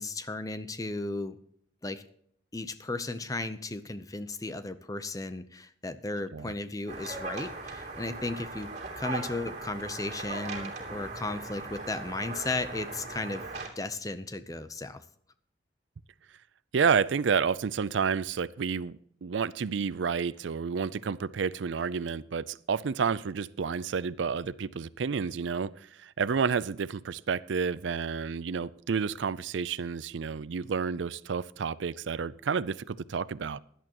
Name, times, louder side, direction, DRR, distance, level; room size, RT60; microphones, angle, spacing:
voice 1, 0.0-1.4 1.8-2.0 2.5-13.5 13.8-15.0, left 2 dB, 20° left, 12 dB, 0.7 m, -35 dB
sound 1, 6.9-13.7, right 3 dB, 40° right, 3.0 m, -39 dB
voice 2, 16.7-25.7 26.0-33.6, right 6 dB, 70° right, 19 dB, 0.4 m, -30 dB
16.5 x 11.0 x 3.0 m, 0.65 s
head